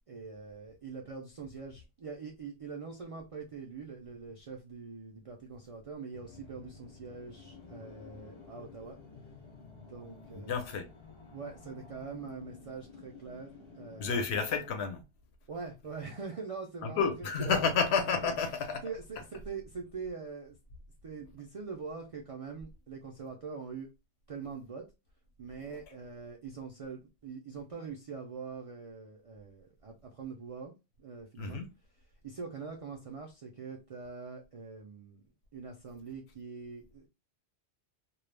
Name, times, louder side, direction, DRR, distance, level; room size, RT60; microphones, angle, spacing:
voice 1, 0.1-9.0 9.9-10.6 11.3-14.2 15.5-17.7 18.8-20.6 21.0-23.9 24.3-24.9 25.4-30.7 31.0-31.6 32.2-35.2 35.5-37.1, right 5 dB, 65° right, 0.3 m, -43 dB
sound 1, 6.1-14.9, left 4 dB, 40° left, 0.4 m, -52 dB
voice 2, 10.3-10.9 14.0-15.0 16.8-18.8 31.4-31.7, left 5 dB, 75° left, 0.9 m, -30 dB
2.3 x 2.0 x 3.1 m
omnidirectional pair, 1.1 m